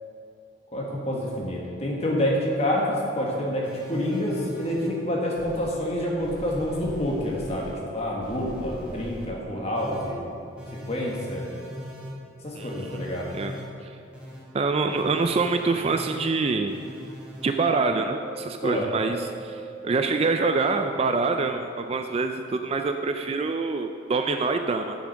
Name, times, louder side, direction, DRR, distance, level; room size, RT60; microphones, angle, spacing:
voice 1, 0.7-10.2 10.8-11.5 12.4-13.3 18.6-18.9, left 1 dB, 30° left, -2 dB, 1.6 m, -27 dB
sound 1, 3.6-4.9 5.4-5.7 6.2-7.7 8.2-9.3 9.7-10.1 10.6-12.1 12.6-13.6 14.1-14.4 14.9-16.2 16.7-17.5 18.0-18.3 18.8-20.4 20.9-21.5, equal, 5° right, 1.9 m, -40 dB
voice 2, 12.5-13.6 14.5-16.8 17.4-25.0, right 4 dB, 30° right, 6 dB, 0.3 m, -26 dB
7.3 x 7.2 x 5.8 m, 2.6 s
head